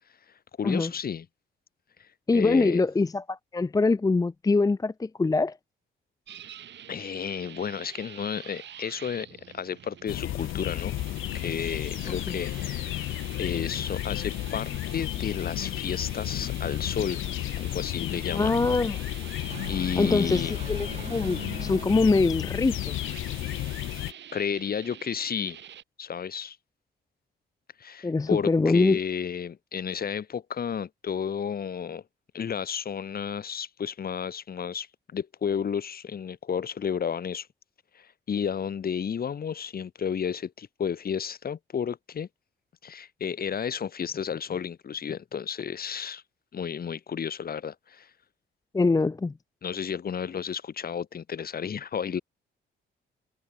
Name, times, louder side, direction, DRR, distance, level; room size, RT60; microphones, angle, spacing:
voice 1, 0.6-1.3 2.0-2.8 6.9-9.3 9.5-10.9 11.3-13.1 13.4-17.2 17.6-18.5 19.4-20.5 24.3-25.6 26.0-26.6 27.8-32.0 32.3-34.9 35.1-37.5 37.9-42.3 42.8-46.2 46.5-48.1 49.6-52.2, left 7 dB, 50° left, 3.3 m, -32 dB
voice 2, 2.3-5.6 12.1-12.4 18.3-19.0 20.0-23.0 28.0-29.0 48.7-49.3, left 3 dB, 20° left, 0.7 m, -24 dB
sound 1, 6.3-25.8, right 10 dB, 65° right, 3.8 m, -46 dB
sound 2, 10.1-24.1, left 15 dB, 85° left, 1.1 m, -32 dB
sound 3, 18.9-23.4, right 5 dB, 35° right, 3.1 m, -44 dB
cardioid pair, 90°, 20 cm